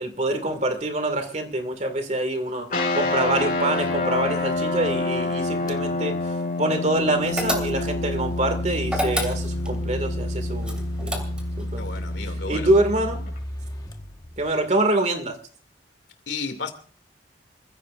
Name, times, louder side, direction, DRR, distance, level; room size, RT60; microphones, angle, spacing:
voice 1, 0.0-6.1 6.6-10.8 11.0-11.2 11.6-11.8 12.5-13.2 14.4-15.4, right 1 dB, 40° right, 2.2 m, -25 dB
sound 1, 2.7-13.4, left 2 dB, 50° left, 4.4 m, -28 dB
sound 2, 5.7-5.9 6.8-14.8, equal, 20° left, 1.3 m, -32 dB
sound 3, 7.4-8.1 8.9-9.8 10.6-11.6, equal, 5° right, 2.9 m, -28 dB
voice 2, 11.8-12.8 16.3-16.7, left 4 dB, 85° left, 2.6 m, -33 dB
28.0 x 15.5 x 2.5 m
head